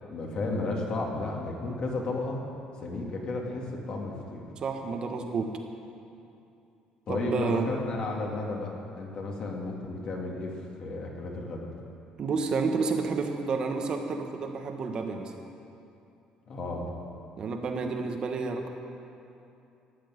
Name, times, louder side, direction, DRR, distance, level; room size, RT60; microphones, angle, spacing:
voice 1, 0.0-2.4 2.8-4.4 7.1-11.7 16.5-16.9, left 2 dB, 45° left, 0 dB, 2.3 m, -33 dB
voice 2, 4.6-5.5 7.1-7.7 12.2-15.3 17.4-18.7, right 4 dB, 40° right, 4 dB, 1.1 m, -30 dB
13.5 x 8.7 x 9.5 m, 2.7 s
cardioid pair, 155°, 2 cm